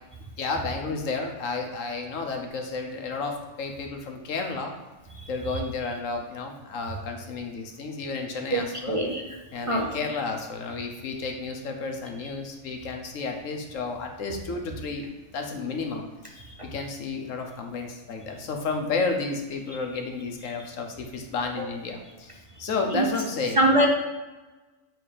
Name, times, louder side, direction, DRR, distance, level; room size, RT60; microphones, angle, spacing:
voice 1, 0.4-4.7 5.3-9.0 9.5-15.1 15.3-16.4 16.6-23.7, left 4 dB, 65° left, 3 dB, 1.2 m, -32 dB
voice 2, 8.9-9.2 9.7-9.9 22.9-23.0 23.6-23.9, right 1 dB, 35° right, -1 dB, 0.5 m, -21 dB
7.9 x 3.4 x 4.9 m, 1.2 s
omnidirectional pair, 1.5 m